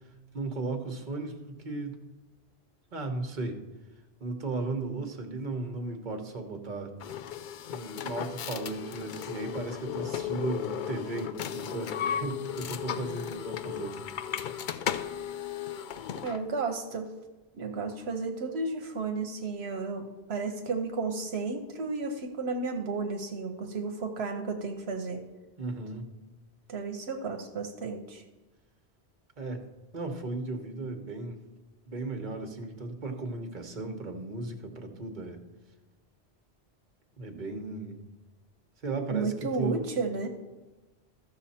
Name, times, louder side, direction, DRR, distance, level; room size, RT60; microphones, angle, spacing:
voice 1, 0.3-2.0 2.9-3.6 4.2-6.9 7.7-14.0 25.6-26.1 29.4-29.6 29.9-31.4 31.9-35.4 37.2-38.0 38.8-39.8, right 3 dB, 50° right, 5 dB, 1.1 m, -35 dB
sound 1, 7.0-16.4, left 9 dB, 60° left, 0.6 m, -35 dB
voice 2, 16.2-17.1 17.5-25.3 26.7-28.2 39.1-40.3, right 4 dB, 80° right, 5 dB, 1.1 m, -33 dB
13.5 x 6.6 x 4.2 m, 1.2 s
omnidirectional pair, 1.1 m